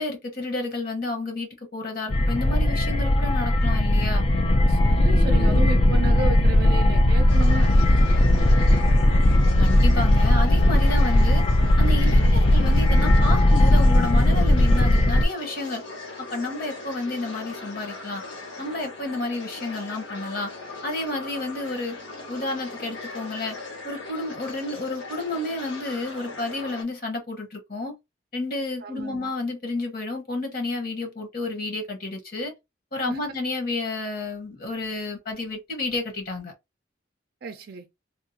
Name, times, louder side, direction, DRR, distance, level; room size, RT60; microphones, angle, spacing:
voice 1, 0.0-4.3 9.6-11.4 11.8-15.8 16.2-18.2 18.6-20.5 20.8-22.0 22.3-23.6 23.8-27.9 28.3-32.5 32.9-36.5, left 2 dB, 50° left, 1.2 m, -31 dB
sound 1, 2.1-15.3, left 1 dB, 30° left, 0.4 m, -18 dB
voice 2, 4.7-7.8 28.8-29.3 33.1-33.2 37.4-37.9, right 3 dB, 55° right, 0.4 m, -32 dB
sound 2, 7.3-26.8, left 3 dB, 80° left, 1.2 m, -39 dB
3.5 x 2.4 x 2.7 m
head